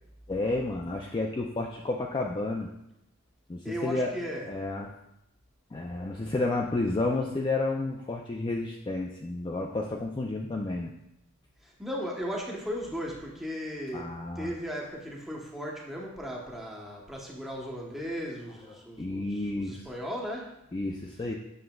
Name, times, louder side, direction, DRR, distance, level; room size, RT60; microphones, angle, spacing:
voice 1, 0.3-2.7 3.5-4.1 4.5-4.9 5.7-10.9 13.9-14.5 19.0-19.9 20.7-21.4, left 2 dB, 20° left, 0 dB, 0.4 m, -31 dB
voice 2, 3.6-4.5 11.8-14.1 14.4-20.5, equal, ahead, -2 dB, 0.9 m, -36 dB
7.7 x 6.4 x 2.3 m, 0.84 s
head